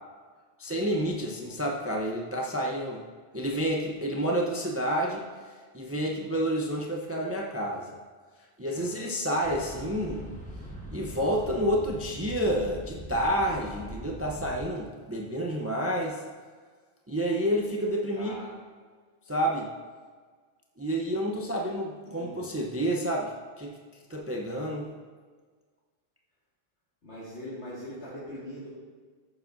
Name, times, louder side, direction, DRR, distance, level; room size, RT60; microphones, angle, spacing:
voice 1, 0.6-3.0 3.3-5.3 5.7-8.0 8.6-10.3 10.9-16.2 17.1-18.3 19.3-19.7 20.8-23.3 23.6-23.7 24.1-24.9, equal, 15° right, -1 dB, 0.6 m, -29 dB
voice 2, 8.7-9.1 18.2-18.5 22.1-22.4 27.0-28.7, equal, 65° left, -10 dB, 2.4 m, -41 dB
sound 1, 9.4-14.6, equal, 5° left, 1.1 m, -42 dB
14.5 x 7.1 x 2.6 m, 1.5 s
omnidirectional pair, 1.2 m